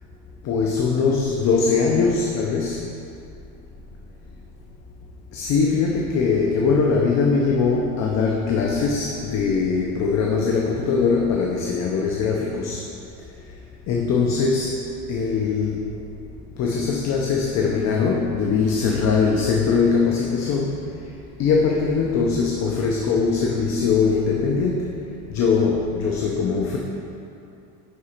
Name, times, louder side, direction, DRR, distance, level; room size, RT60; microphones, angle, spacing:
voice 1, 0.4-2.8 5.3-12.8 13.9-14.7 15.1-15.9 16.6-20.9 21.4-25.0 25.3-26.8, left 5 dB, 45° left, -1 dB, 0.6 m, -21 dB
10.0 x 4.0 x 4.3 m, 2.6 s
cardioid pair, 170°, 40 cm